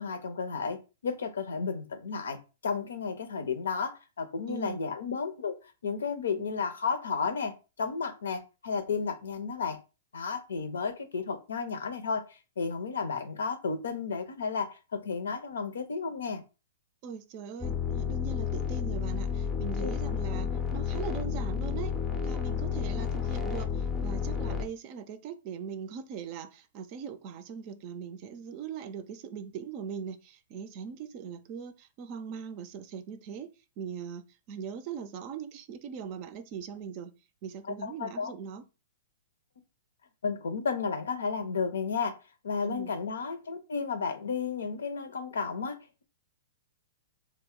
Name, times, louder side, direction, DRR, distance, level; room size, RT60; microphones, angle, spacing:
voice 1, 0.0-2.4 2.6-5.5 5.8-9.8 10.1-12.3 12.6-16.4 19.8-19.9 37.7-38.3 40.2-42.2 42.4-46.0, left 5 dB, 80° left, 0.6 m, -33 dB
voice 2, 4.5-4.8 17.0-22.0 22.2-33.5 33.8-37.1 37.4-38.6 42.6-42.9, right 7 dB, 45° right, 0.4 m, -40 dB
sound 1, 17.6-24.7, left 7 dB, 10° left, 0.5 m, -31 dB
2.2 x 2.0 x 3.6 m
hypercardioid pair, 120°, 0 cm